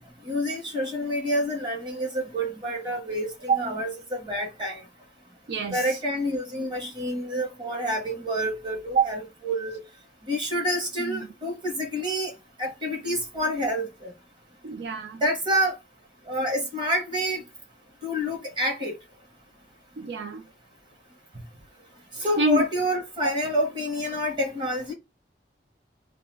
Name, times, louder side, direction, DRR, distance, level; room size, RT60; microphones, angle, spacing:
voice 1, 0.2-4.8 5.7-9.8 10.3-12.3 12.6-14.1 15.2-15.8 16.3-17.4 18.0-18.9 22.2-24.9, equal, 25° right, 1.1 m, -28 dB
voice 2, 5.5-6.0 8.9-9.0 11.0-11.3 14.6-15.2 20.0-20.5 22.4-22.6 23.2-23.3, right 3 dB, 70° right, 0.4 m, -26 dB
2.4 x 2.3 x 3.1 m
head